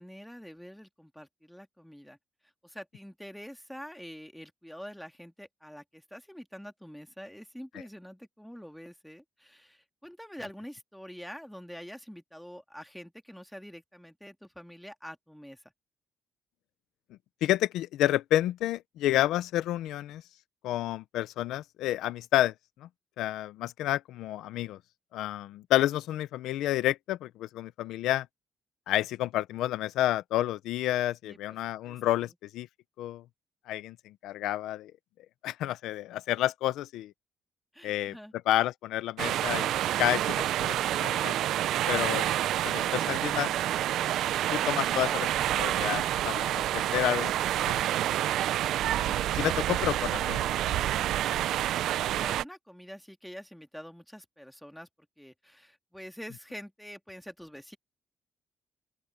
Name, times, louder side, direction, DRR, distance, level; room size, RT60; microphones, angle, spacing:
voice 1, 0.0-2.2 2.4-15.6 31.2-31.6 31.8-32.3 37.7-38.3 51.9-54.9 55.2-57.8, equal, ahead, 2.1 m, -46 dB
voice 2, 17.4-20.2 20.6-22.5 22.8-22.9 23.2-24.8 25.1-28.3 28.9-32.7 33.0-33.2 33.7-34.9 35.4-37.1 37.8-38.1 38.5-39.7 40.0-41.4 41.9-42.3 42.6-43.5 44.5-47.3 47.7-47.8 48.8-51.1, left 14 dB, 90° left, 0.7 m, -30 dB
sound 1, 39.2-52.4, right 12 dB, 80° right, 0.6 m, -28 dB
open air
cardioid pair, 90°, 0 cm